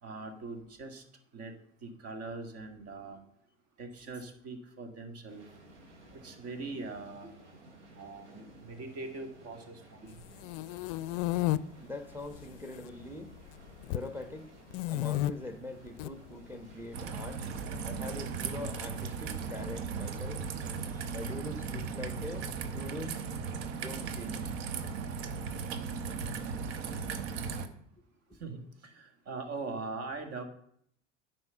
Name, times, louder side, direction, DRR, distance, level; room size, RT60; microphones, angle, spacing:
voice 1, 0.0-1.0 1.3-1.5 1.8-3.2 3.8-5.4 6.2-7.3 8.0-10.2 17.6-17.7 28.4-30.4, right 3 dB, 45° right, 7 dB, 2.0 m, -42 dB
sound 1, 5.3-24.1, right 1 dB, 80° right, 2.7 m, -55 dB
sound 2, 10.2-11.6 12.2-12.9 13.1-14.1 14.7-15.3 15.9-16.1 17.2-18.2, left 16 dB, 55° left, 0.5 m, -32 dB
voice 2, 11.8-13.4 13.9-14.5 14.9-17.4 17.8-20.4 20.9-23.2 23.8-24.5, left 1 dB, 5° right, 8 dB, 1.1 m, -43 dB
Raindrop / Trickle dribble, 16.9-27.7, right 5 dB, 65° right, 1.1 m, -37 dB
9.5 x 5.2 x 7.0 m, 0.66 s
hypercardioid pair, 80°, 35 cm